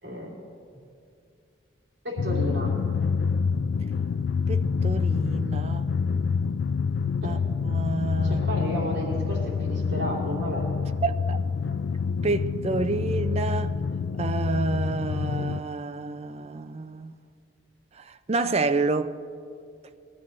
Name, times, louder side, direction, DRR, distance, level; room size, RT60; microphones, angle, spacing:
voice 1, 0.0-0.4 2.0-2.8 7.2-7.4 8.2-10.7, equal, 65° right, 3.0 m, -32 dB
Drum, 2.2-15.6, left 5 dB, 65° left, 0.3 m, -27 dB
voice 2, 4.5-5.9 7.2-7.4 7.6-8.4 11.0-11.4 12.2-13.7 14.2-17.1 18.0-19.1, right 3 dB, 35° right, 0.5 m, -29 dB
21.0 x 13.5 x 3.2 m
head